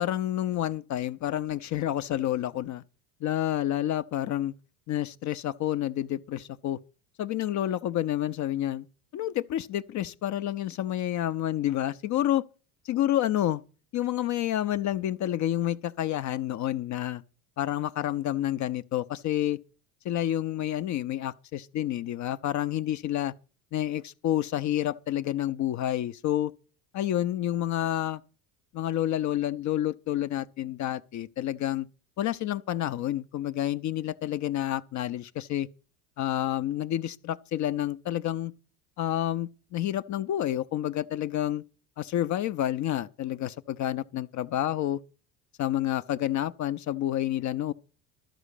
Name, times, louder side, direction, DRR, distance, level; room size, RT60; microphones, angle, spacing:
voice 1, 0.0-2.8 3.2-4.5 4.9-6.8 7.2-8.9 9.1-12.4 12.9-13.6 13.9-17.2 17.6-19.6 20.0-23.3 23.7-26.5 26.9-28.2 28.7-31.9 32.2-35.7 36.2-38.5 39.0-41.6 42.0-45.0 45.6-47.7, left 12 dB, 40° left, 0.5 m, -29 dB
12.5 x 5.0 x 8.2 m
hypercardioid pair, 80°, 49 cm